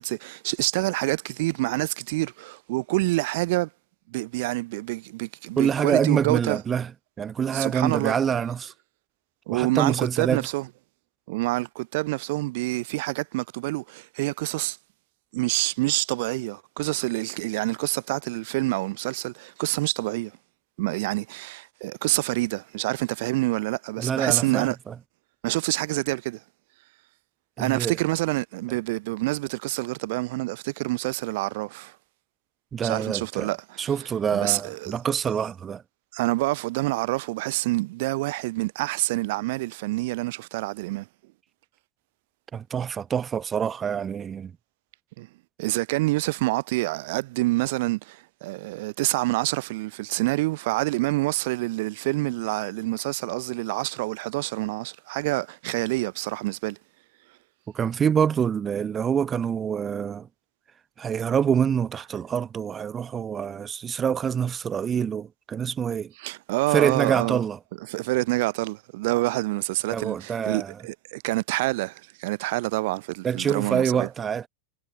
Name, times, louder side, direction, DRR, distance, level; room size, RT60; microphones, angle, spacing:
voice 1, 0.0-3.7 4.1-6.6 7.5-8.2 9.5-10.7 11.3-14.8 15.3-20.4 20.8-24.8 25.4-26.4 27.6-32.0 32.8-33.9 34.3-34.9 36.1-41.1 45.2-45.3 45.6-56.8 66.2-67.4 67.9-74.1, right 21 dB, 50° right, 0.6 m, -27 dB
voice 2, 5.6-6.9 7.2-8.7 9.5-10.5 24.0-24.9 27.6-27.9 32.7-33.5 33.8-35.8 42.5-44.5 57.7-60.3 61.0-66.1 66.7-67.6 69.9-70.7 73.2-74.5, right 7 dB, 20° right, 1.2 m, -26 dB
figure-of-eight pair, 90°, 0 cm